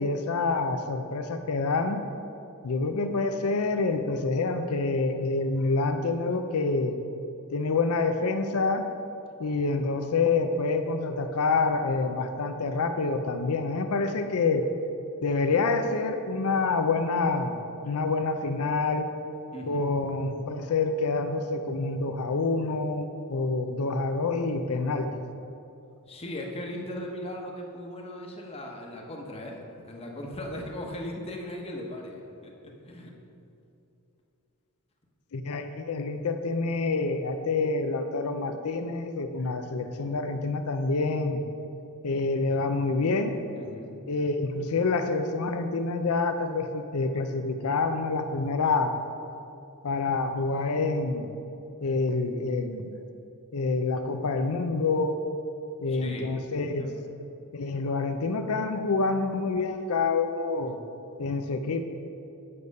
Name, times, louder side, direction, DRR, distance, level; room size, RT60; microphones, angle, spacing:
voice 1, 0.0-2.0 2.6-6.9 7.5-8.9 9.4-14.7 15.2-17.6 17.8-19.1 19.7-25.1 35.3-41.4 42.0-43.3 44.1-48.9 49.8-51.3 51.8-52.9 53.5-55.2 55.8-56.8 57.5-60.8 61.2-61.8, left 3 dB, 75° left, 7 dB, 0.5 m, -27 dB
voice 2, 19.5-19.8 26.0-33.1 43.6-43.9 55.9-56.4 56.8-57.0, left 1 dB, 25° left, 0 dB, 1.0 m, -38 dB
8.5 x 6.9 x 5.3 m, 2.7 s
head